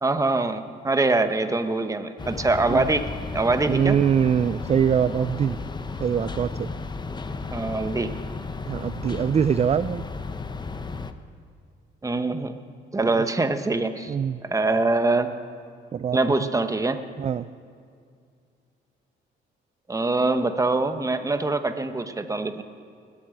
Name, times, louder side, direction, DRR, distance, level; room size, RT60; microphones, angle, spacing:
voice 1, 0.0-3.1 3.3-4.0 7.5-8.1 12.0-12.5 12.9-14.1 14.4-15.3 16.1-17.0 19.9-22.6, right 2 dB, 15° right, 9 dB, 1.0 m, -24 dB
sound 1, 2.2-11.1, left 4 dB, 20° left, 0.8 m, -34 dB
voice 2, 3.7-5.6 6.0-6.7 8.7-10.0 13.0-13.2 14.1-14.4 15.9-16.5 17.2-17.5, right 8 dB, 30° right, 14 dB, 0.4 m, -23 dB
20.0 x 8.7 x 7.9 m, 2.2 s
cardioid pair, 90°, 20 cm